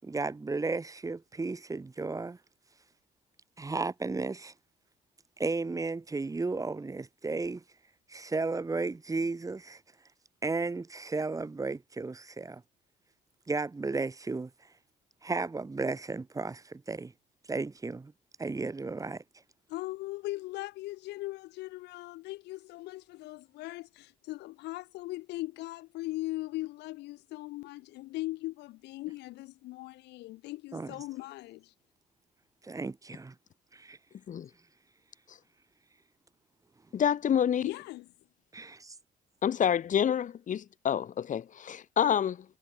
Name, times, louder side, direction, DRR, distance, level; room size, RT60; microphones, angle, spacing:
voice 1, 0.0-2.4 3.6-4.5 5.4-7.6 8.1-9.8 10.4-12.6 13.5-14.5 15.2-17.1 17.5-18.1 18.4-19.2 30.7-30.9 32.6-33.3 33.7-34.0 38.5-38.9, right 3 dB, 20° right, 7.4 m, -34 dB
voice 2, 19.7-31.7 37.6-38.1, left 19 dB, 85° left, 6.9 m, -39 dB
voice 3, 36.9-37.7 39.4-42.5, left 9 dB, 50° left, 5.6 m, -28 dB
cardioid pair, 110°, 17 cm